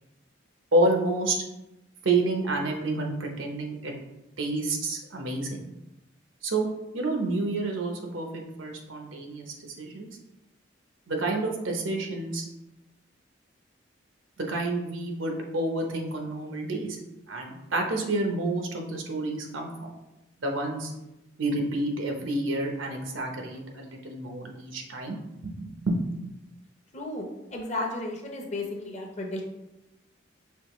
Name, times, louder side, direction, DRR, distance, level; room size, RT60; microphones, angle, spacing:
voice 1, 0.7-1.4 2.0-3.9 4.4-5.6 6.4-6.7 6.9-10.1 11.1-12.4 14.4-17.0 17.3-19.9 20.4-20.9 21.4-25.2 25.4-26.0, right 2 dB, 90° right, 2 dB, 0.9 m, -29 dB
voice 2, 26.9-29.4, left 2 dB, 35° left, 1 dB, 0.7 m, -34 dB
5.5 x 3.1 x 3.1 m, 0.93 s
head